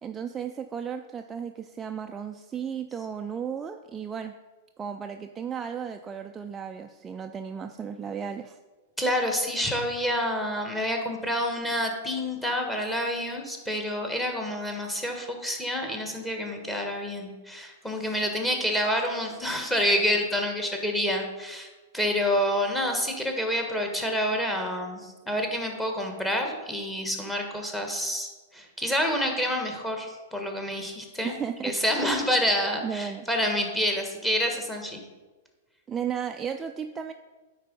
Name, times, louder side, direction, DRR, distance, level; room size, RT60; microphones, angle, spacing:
voice 1, 0.0-4.3 4.8-8.6 31.2-32.1 32.8-33.3 35.9-37.1, right 7 dB, 20° right, 5 dB, 0.4 m, -34 dB
voice 2, 9.0-31.3 31.6-35.0, equal, 5° left, 3 dB, 1.4 m, -28 dB
9.4 x 4.0 x 5.3 m, 1.2 s
figure-of-eight pair, 100°, 0 cm